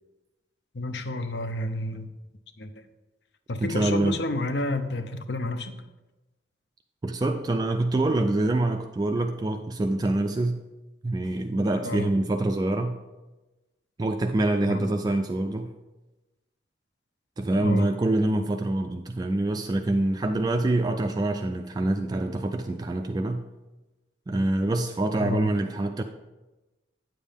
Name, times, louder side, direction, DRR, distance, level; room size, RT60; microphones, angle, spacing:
voice 1, 0.7-2.1 2.6-2.8 3.5-5.8 11.8-12.1 14.7-14.8 17.6-17.9 25.2-25.5, left 1 dB, 70° left, 9 dB, 0.6 m, -30 dB
voice 2, 3.6-4.2 7.0-10.6 11.0-13.0 14.0-15.7 17.4-23.4 24.3-26.0, right 2 dB, 20° right, 5 dB, 0.3 m, -25 dB
9.0 x 7.3 x 3.5 m, 1.1 s
head